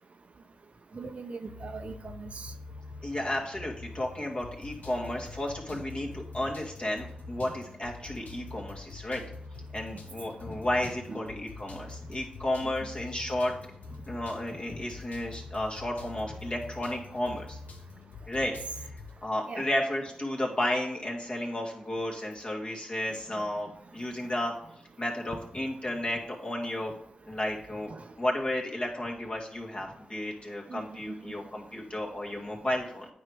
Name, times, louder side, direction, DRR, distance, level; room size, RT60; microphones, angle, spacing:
voice 1, 0.9-2.5 11.1-11.3 12.6-12.7 19.5-19.6 27.9-28.0 30.7-30.8 31.3-31.4, right 4 dB, 55° right, 7 dB, 0.7 m, -40 dB
sound 1, 1.5-19.2, left 3 dB, 85° left, 1.0 m, -45 dB
voice 2, 3.0-9.2 9.7-13.5 14.1-17.6 18.3-18.5 18.8-18.9 19.2-24.5 25.0-26.9 27.3-27.9 28.2-33.1, left 1 dB, 40° left, -1 dB, 2.2 m, -33 dB
9.2 x 4.9 x 3.4 m, 0.68 s
cardioid pair, 55°, 3 cm